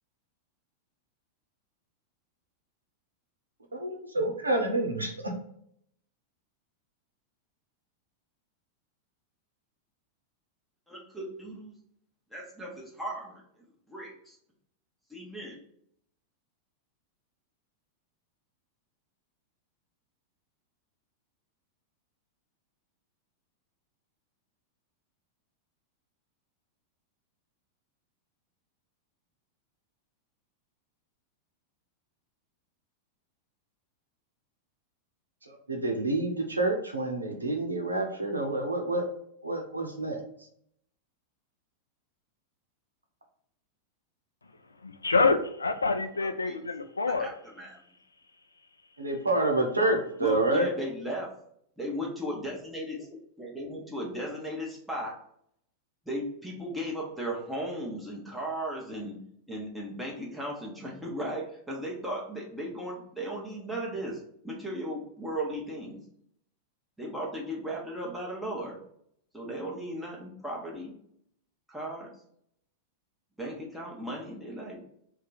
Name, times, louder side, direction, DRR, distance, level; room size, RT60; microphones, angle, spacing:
voice 1, 3.7-5.3 35.5-39.0 39.4-40.2 49.0-50.7, right 2 dB, 85° right, 2 dB, 0.6 m, -28 dB
voice 2, 10.9-11.8 12.3-14.4 15.1-15.6 46.2-46.6 47.2-47.8 50.2-51.4 51.8-53.1 53.4-55.2 56.0-59.2 59.5-66.0 67.0-68.8 69.3-70.9 71.7-72.1 73.4-74.8, equal, ahead, -3 dB, 1.1 m, -36 dB
voice 3, 44.8-47.3, left 3 dB, 85° left, 8 dB, 0.3 m, -26 dB
2.8 x 2.3 x 3.9 m, 0.70 s
figure-of-eight pair, 95°, 0 cm